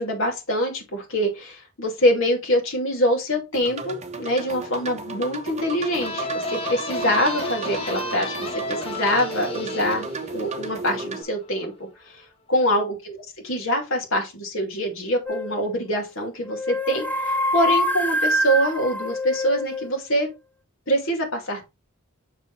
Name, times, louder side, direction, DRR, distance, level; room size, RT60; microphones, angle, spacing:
voice 1, 0.0-11.9 12.5-13.2 13.4-20.3 20.9-21.6, equal, 65° left, 2.4 m, -24 dB
sound 1, 3.5-11.2, right 3 dB, 30° right, 0.9 m, -34 dB
sound 2, 6.0-11.4, left 2 dB, 25° left, 1.3 m, -32 dB
sound 3, 15.3-15.7 16.5-19.9, left 1 dB, 10° left, 0.7 m, -25 dB
6.6 x 5.0 x 3.3 m
head